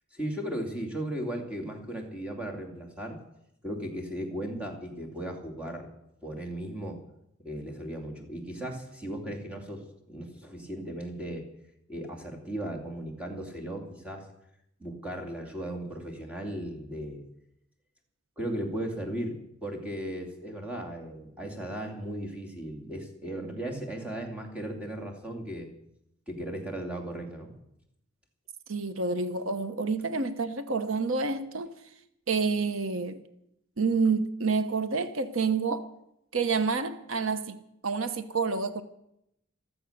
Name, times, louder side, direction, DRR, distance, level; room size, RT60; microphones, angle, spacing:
voice 1, 0.1-3.2 3.6-5.9 6.2-7.0 7.4-11.5 11.9-14.3 14.8-17.2 18.4-25.7 26.3-27.5, right 1 dB, 5° right, 2.7 m, -36 dB
voice 2, 28.7-31.7 32.3-33.2 33.8-35.9 36.3-37.6 37.8-38.8, right 4 dB, 85° right, 1.0 m, -28 dB
14.5 x 14.0 x 6.7 m
head